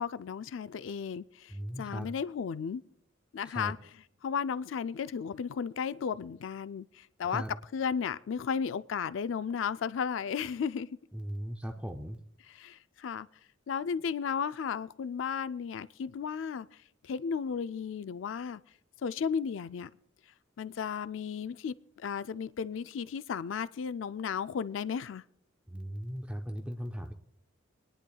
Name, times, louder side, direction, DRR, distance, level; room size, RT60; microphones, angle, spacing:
voice 1, 0.0-2.8 3.3-7.4 7.7-10.9 12.5-13.3 13.7-16.7 17.0-18.6 19.0-19.9 20.6-25.2, left 6 dB, 70° left, 0.4 m, -34 dB
voice 2, 1.5-2.1 3.4-3.7 7.3-7.5 11.1-12.2 25.7-27.1, equal, 5° right, 0.5 m, -38 dB
27.0 x 10.0 x 2.3 m
head